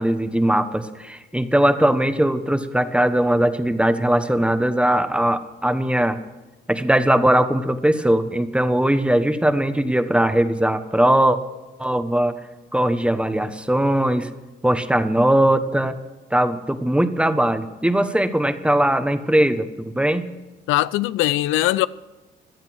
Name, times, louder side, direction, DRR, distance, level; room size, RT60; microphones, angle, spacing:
voice 1, 0.0-6.2 6.7-11.4 11.8-12.4 12.7-14.3 14.6-15.9 16.3-20.3, right 1 dB, 5° right, 1.2 m, -20 dB
voice 2, 20.7-21.9, left 15 dB, 85° left, 0.4 m, -20 dB
18.0 x 12.0 x 6.2 m
cardioid pair, 90°, 20 cm